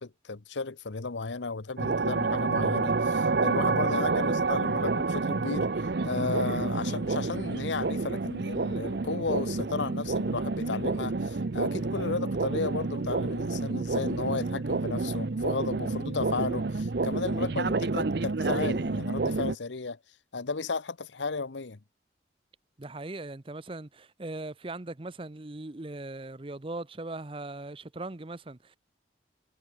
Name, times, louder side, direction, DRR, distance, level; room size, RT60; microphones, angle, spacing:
voice 1, 0.0-20.0 20.3-21.8, left 4 dB, 90° left, 0.9 m, -34 dB
sound 1, 1.8-19.5, right 3 dB, 60° right, 0.7 m, -29 dB
voice 2, 22.8-28.8, right 2 dB, 30° right, 0.8 m, -39 dB
head